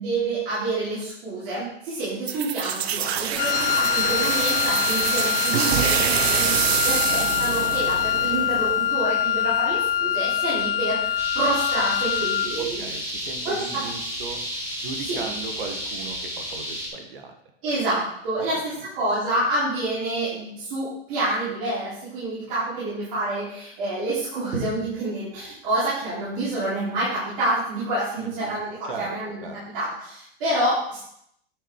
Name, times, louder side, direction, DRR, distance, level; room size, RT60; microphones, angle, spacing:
voice 1, 0.0-12.8 13.4-13.8 15.1-15.2 17.6-18.6 18.9-29.5 29.7-31.0, right 2 dB, 35° right, -10 dB, 3.7 m, -28 dB
sound 1, 2.3-8.9, right 9 dB, 85° right, 0.9 m, -26 dB
Wind instrument woodwind instrument, 3.4-12.6, left 10 dB, 60° left, 0.4 m, -24 dB
sound 2, 11.2-16.9, equal, 10° right, 1.3 m, -32 dB
voice 2, 12.6-14.4 14.8-17.3 18.4-18.5 28.2-28.6 28.8-29.1 29.4-29.6, right 4 dB, 60° right, 5 dB, 1.5 m, -37 dB
9.7 x 5.5 x 4.7 m, 0.72 s
supercardioid pair, 175°, 31 cm